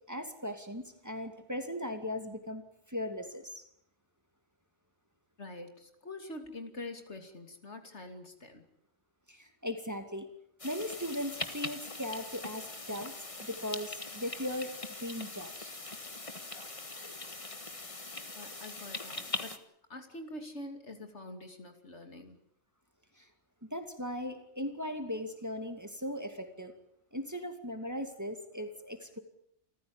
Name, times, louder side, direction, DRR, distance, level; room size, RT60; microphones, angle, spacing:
voice 1, 0.1-2.6 2.9-3.6 9.3-10.3 10.6-13.1 13.4-14.7 15.0-15.7 23.2-23.3 23.7-26.7 27.1-29.2, left 1 dB, 15° right, 6 dB, 2.4 m, -38 dB
voice 2, 5.4-8.6 18.3-19.6 19.9-22.4, left 2 dB, 70° left, 6 dB, 3.1 m, -45 dB
sound 1, 10.6-19.6, left 2 dB, 30° left, 1.6 m, -41 dB
28.5 x 14.5 x 8.9 m, 0.72 s
omnidirectional pair, 1.2 m